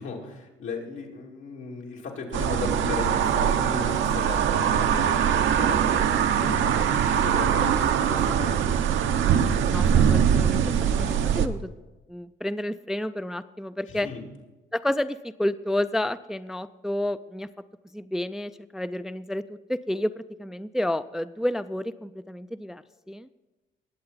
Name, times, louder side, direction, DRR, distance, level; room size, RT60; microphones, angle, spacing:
voice 1, 0.0-6.0 6.4-8.7 13.9-14.2, left 4 dB, 80° left, -2 dB, 2.7 m, -36 dB
sound 1, 2.3-11.5, right 8 dB, 75° right, 0.8 m, -22 dB
voice 2, 9.6-11.7 12.1-14.1 14.7-17.5 17.9-23.3, left 1 dB, ahead, 13 dB, 0.3 m, -30 dB
20.0 x 7.8 x 4.1 m, 1.1 s
cardioid pair, 90°, 20 cm